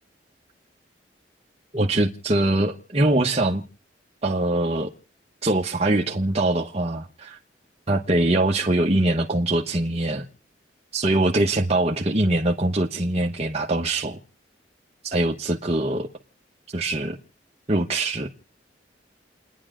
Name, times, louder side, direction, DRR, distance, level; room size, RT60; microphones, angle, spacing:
voice 1, 1.7-3.6 4.2-4.9 5.4-7.4 7.9-10.2 10.9-14.2 15.0-16.1 16.7-17.2 17.7-18.3, right 2 dB, 35° right, 1.1 m, -23 dB
29.5 x 10.0 x 3.7 m
head